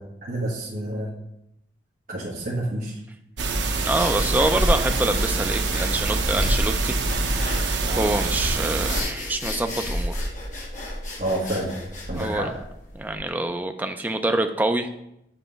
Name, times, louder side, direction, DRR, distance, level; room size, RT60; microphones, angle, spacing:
voice 1, 0.2-1.1 2.1-3.0 7.8-8.1 11.2-11.7 12.1-12.5, right 1 dB, 50° right, -7 dB, 1.2 m, -28 dB
sound 1, 3.4-9.0, right 3 dB, 80° right, 0.7 m, -25 dB
voice 2, 3.8-10.2 12.1-12.5 12.9-14.9, right 2 dB, 10° right, 6 dB, 0.3 m, -26 dB
sound 2, 3.9-13.2, equal, 45° left, 1.2 m, -30 dB
7.5 x 2.9 x 5.0 m, 0.82 s
head